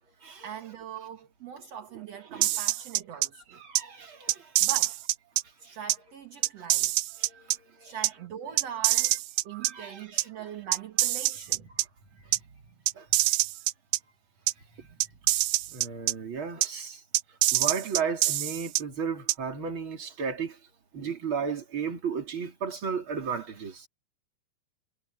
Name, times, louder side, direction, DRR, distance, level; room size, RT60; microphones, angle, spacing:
voice 1, 0.1-3.6 4.6-5.0 5.6-7.0 7.4-9.2 9.4-11.7 12.1-12.8 14.7-15.0, right 8 dB, 55° right, 2.8 m, -42 dB
voice 2, 2.3-2.7 3.5-4.5 5.6-5.8 6.6-6.7 7.2-8.0 9.0-9.2 9.5-10.2 12.3-12.4 12.9-13.4 14.8-14.9 15.7-17.0 17.3-20.6 20.9-23.9, right 6 dB, 40° right, 3.7 m, -35 dB
sound 1, 2.4-3.3 3.8-3.9 4.3-5.4 5.9-6.0 6.4-7.6 8.0-8.1 8.6-9.7 10.2-10.3 10.7-11.9 12.3-12.4 12.9-14.0 14.5-14.6 15.0-16.1 16.6-16.7 17.1-18.8 19.3-19.4, right 17 dB, 85° right, 2.2 m, -25 dB
omnidirectional pair, 3.7 m